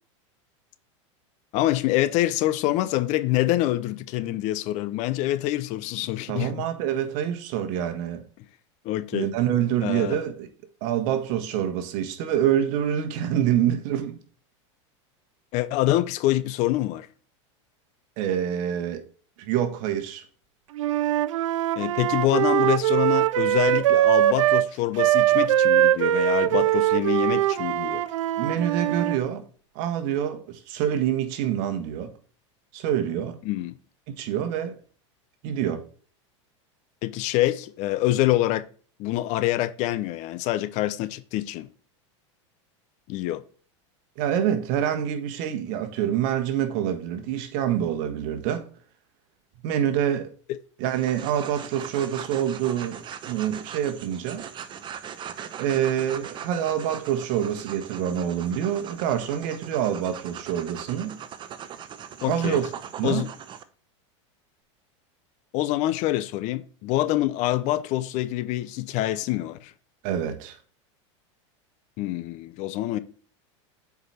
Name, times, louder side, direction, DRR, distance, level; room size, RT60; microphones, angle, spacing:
voice 1, 1.5-6.5 8.8-9.3 9.8-10.2 15.5-17.1 21.8-28.0 33.4-33.7 37.0-38.6 39.0-41.7 43.1-43.4 62.2-62.6 63.0-63.3 65.5-69.7 72.0-73.0, left 15 dB, 50° left, 0.7 m, -26 dB
voice 2, 6.3-8.2 9.1-10.5 10.8-14.2 18.2-19.0 19.4-20.2 28.4-29.4 29.7-32.1 32.7-33.4 34.2-34.8 35.4-35.8 44.2-48.7 49.6-50.3 50.8-54.5 55.6-61.2 62.2-62.6 63.0-63.3 70.0-70.6, right 10 dB, 55° right, 1.5 m, -26 dB
Wind instrument woodwind instrument, 20.8-24.7 25.0-29.2, right 13 dB, 90° right, 0.5 m, -22 dB
sound 1, 50.8-63.6, right 8 dB, 30° right, 0.9 m, -40 dB
8.0 x 4.9 x 4.3 m
supercardioid pair, 125°, 16 cm